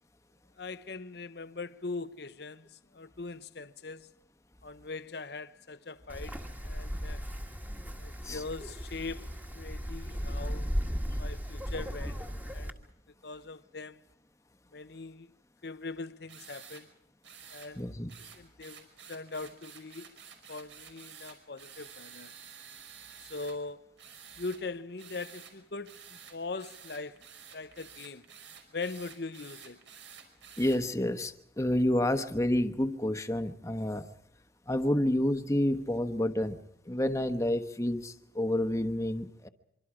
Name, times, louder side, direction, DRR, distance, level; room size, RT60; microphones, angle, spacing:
voice 1, 0.6-4.1 4.6-7.2 8.0-10.7 11.2-12.8 13.2-14.0 14.7-15.3 15.6-16.9 17.5-17.9 18.3-20.2 20.5-22.3 23.2-23.9 24.4-27.2 27.5-28.3 28.7-29.8, left 3 dB, 55° left, 0.8 m, -41 dB
Wind, 6.1-12.7, equal, 10° right, 1.7 m, -36 dB
sound 1, 16.3-16.8 17.2-17.7 18.1-23.6 24.0-24.6 25.0-25.5 25.8-30.8, right 7 dB, 75° right, 5.5 m, -50 dB
voice 2, 17.8-18.1 30.6-34.1 34.7-36.6 36.9-39.5, left 1 dB, 15° left, 1.1 m, -29 dB
25.5 x 24.5 x 4.9 m
head